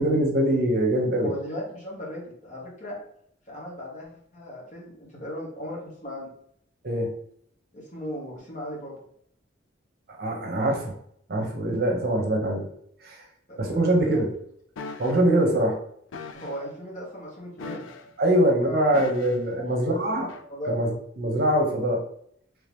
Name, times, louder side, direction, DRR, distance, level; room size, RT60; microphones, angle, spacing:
voice 1, 0.0-1.3 6.8-7.1 10.1-10.9 11.3-12.7 13.0-13.2 13.6-14.3 15.0-15.8 18.2-20.3 20.7-20.9 21.2-22.0, right 1 dB, 50° right, 1 dB, 0.8 m, -23 dB
voice 2, 1.2-3.0 3.5-6.3 7.7-8.9 13.5-13.9 14.1-14.2 16.3-17.9 18.4-18.9 19.5-19.7 20.5-20.8, equal, 40° left, -4 dB, 1.4 m, -37 dB
sound 1, 14.8-15.2 16.1-16.6 17.6-18.2 18.9-19.5 20.3-20.5, left 4 dB, 85° left, 0.4 m, -39 dB
3.2 x 2.8 x 3.4 m, 0.68 s
head